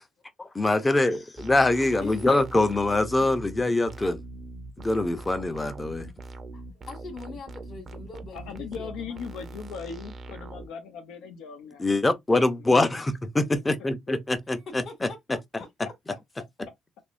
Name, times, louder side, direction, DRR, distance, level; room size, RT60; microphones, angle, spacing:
voice 1, 0.5-4.2 4.8-6.1 11.8-14.8, left 2 dB, 15° left, 0.6 m, -24 dB
sound 1, 1.4-10.7, right 2 dB, 35° right, 0.6 m, -42 dB
voice 2, 2.0-2.4 5.7-6.2 6.5-9.2 14.5-15.7, left 3 dB, 50° left, 1.8 m, -44 dB
voice 3, 8.3-11.9 12.6-12.9, left 6 dB, 85° left, 0.7 m, -39 dB
3.5 x 3.1 x 2.5 m
cardioid pair, 125°, 0 cm